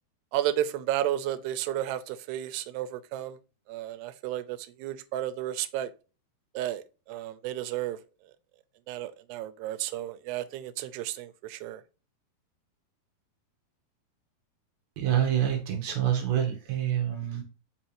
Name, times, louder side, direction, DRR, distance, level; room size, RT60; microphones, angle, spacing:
voice 1, 0.3-3.4 3.7-5.9 6.5-8.0 8.9-11.8, right 12 dB, 90° right, 2.7 m, -32 dB
voice 2, 15.0-17.4, right 10 dB, 65° right, 1.9 m, -27 dB
5.7 x 5.6 x 3.0 m
omnidirectional pair, 4.6 m